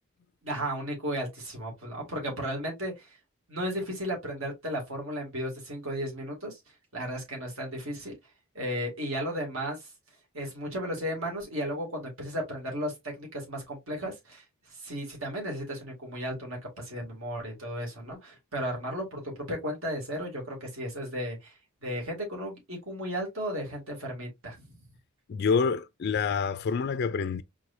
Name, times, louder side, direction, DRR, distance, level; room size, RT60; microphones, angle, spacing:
voice 1, 0.4-3.2 3.5-6.6 6.9-8.2 8.5-9.9 10.3-14.4 14.8-21.5 21.8-24.8, equal, 65° right, 2.4 m, -34 dB
voice 2, 25.3-27.4, left 5 dB, 50° left, 0.3 m, -27 dB
4.7 x 3.7 x 2.6 m
head